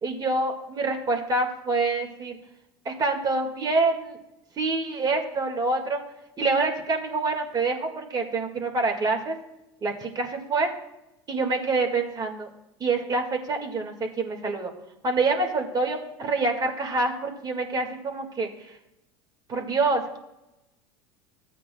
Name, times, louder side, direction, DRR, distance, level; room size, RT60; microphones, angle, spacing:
voice 1, 0.0-2.4 2.9-4.2 4.6-6.0 6.4-9.4 9.8-10.7 11.3-12.5 12.8-14.7 15.0-18.5 19.5-20.2, right 3 dB, 30° right, 3 dB, 1.9 m, -26 dB
15.5 x 8.4 x 2.3 m, 0.94 s
hypercardioid pair, 85°, 13 cm